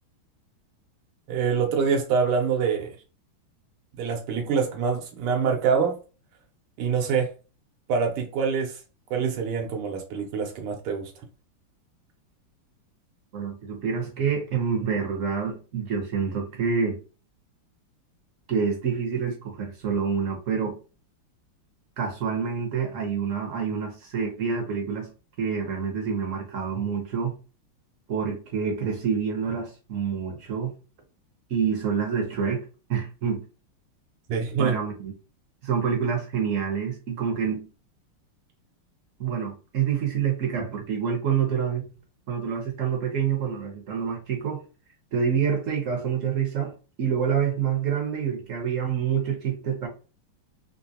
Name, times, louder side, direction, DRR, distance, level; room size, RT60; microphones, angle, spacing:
voice 1, 1.3-2.9 3.9-6.0 6.8-7.3 7.9-8.8 9.1-11.1 34.3-34.7, right 6 dB, 90° right, 1.7 m, -25 dB
voice 2, 13.3-17.0 18.5-20.8 22.0-25.1 25.4-27.4 28.1-30.7 31.5-33.4 34.6-35.1 35.6-37.7 39.2-41.9 42.3-44.6 45.1-46.7 47.0-49.9, right 7 dB, 60° right, 0.8 m, -27 dB
3.7 x 2.6 x 2.7 m
omnidirectional pair, 2.4 m